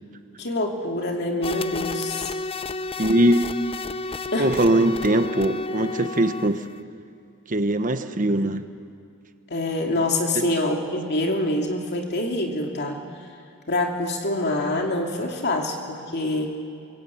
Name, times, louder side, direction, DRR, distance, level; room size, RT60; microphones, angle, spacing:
voice 1, 0.4-2.3 4.3-4.5 9.5-13.0 13.7-16.5, left 1 dB, 50° left, 1 dB, 2.7 m, -25 dB
sound 1, 1.4-6.8, left 3 dB, 25° left, 0.6 m, -31 dB
voice 2, 3.0-3.4 4.4-6.6 7.5-8.7 10.3-10.5, right 1 dB, 40° right, 9 dB, 1.2 m, -21 dB
26.0 x 23.0 x 8.7 m, 2.6 s
head